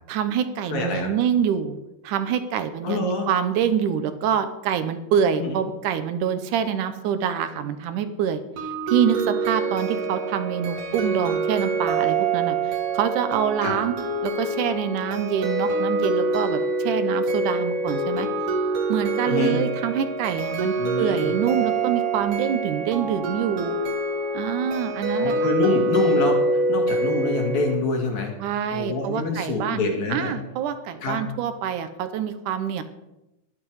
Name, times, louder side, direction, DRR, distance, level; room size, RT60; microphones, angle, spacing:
voice 1, 0.1-1.8 2.0-8.4 8.9-14.0 14.2-18.3 18.9-23.8 24.3-25.4 28.4-29.8 30.1-32.8, right 8 dB, 75° right, 10 dB, 2.3 m, -26 dB
voice 2, 0.7-1.1 2.8-3.3 5.4-5.6 13.6-13.7 19.3-19.6 20.8-21.3 25.1-28.3 28.7-30.3 31.0-31.2, left 3 dB, 60° left, 1 dB, 3.3 m, -26 dB
sound 1, 8.6-27.7, right 3 dB, 55° right, 1.9 m, -25 dB
12.5 x 11.0 x 4.8 m, 0.94 s
omnidirectional pair, 3.7 m